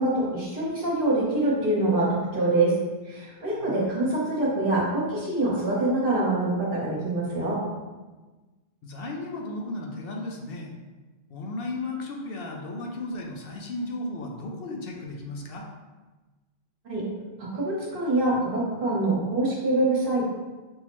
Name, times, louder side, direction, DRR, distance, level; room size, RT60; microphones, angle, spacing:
voice 1, 0.0-2.7 3.1-7.6 16.8-17.0 17.4-20.2, right 2 dB, 55° right, -5 dB, 1.1 m, -25 dB
voice 2, 3.5-4.0 8.8-10.7 11.3-15.7, left 2 dB, 70° left, 0 dB, 0.8 m, -35 dB
5.5 x 2.1 x 2.9 m, 1.2 s
omnidirectional pair, 1.1 m